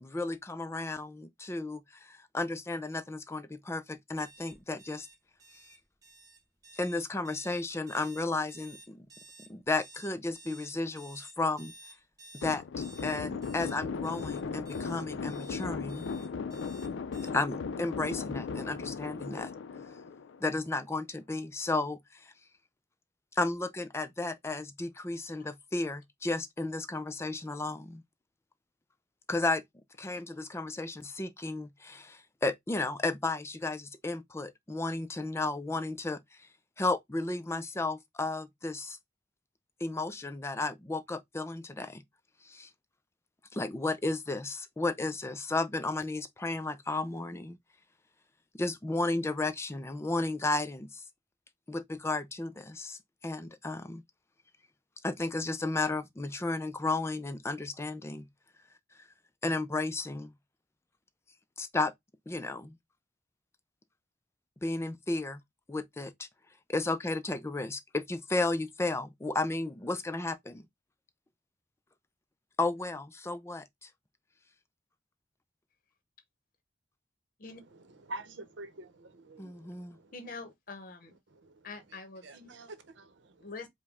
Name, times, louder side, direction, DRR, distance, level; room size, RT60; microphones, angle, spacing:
voice 1, 0.0-5.1 6.8-9.1 9.5-11.7 12.3-16.0 17.3-19.5 20.4-22.3 23.3-28.0 29.3-29.6 30.0-36.2 36.8-39.0 39.8-42.0 42.5-42.7 43.5-47.6 48.5-51.0 51.7-54.0 55.0-58.2 59.4-60.3 61.6-61.9 62.3-62.8 64.6-65.4 65.7-66.3 66.7-70.6 72.6-73.9 79.4-80.0, left 2 dB, 15° left, 0.4 m, -33 dB
sound 1, 4.2-17.3, right 2 dB, 20° right, 1.4 m, -54 dB
sound 2, 12.4-20.7, left 5 dB, 85° left, 0.4 m, -37 dB
voice 2, 77.5-80.1 81.3-81.7 82.2-83.5, right 2 dB, 75° right, 0.8 m, -47 dB
voice 3, 80.1-81.2 81.6-82.2 83.4-83.7, left 3 dB, 50° left, 0.8 m, -44 dB
4.9 x 2.1 x 3.5 m
head